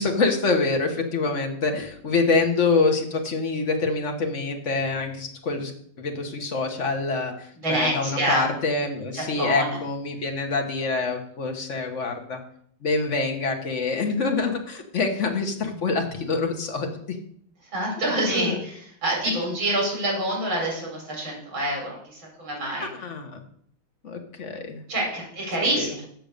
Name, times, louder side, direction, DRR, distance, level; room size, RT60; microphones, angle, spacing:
voice 1, 0.0-5.7 6.0-12.4 12.8-17.2 18.2-18.5 22.8-23.4 24.0-24.8 25.8-25.9, left 3 dB, 40° left, 4 dB, 1.5 m, -26 dB
voice 2, 7.6-8.4 9.1-9.8 17.7-22.9 24.9-26.1, right 1 dB, 65° right, -2 dB, 4.8 m, -26 dB
7.8 x 6.7 x 6.7 m, 0.65 s
omnidirectional pair, 2.3 m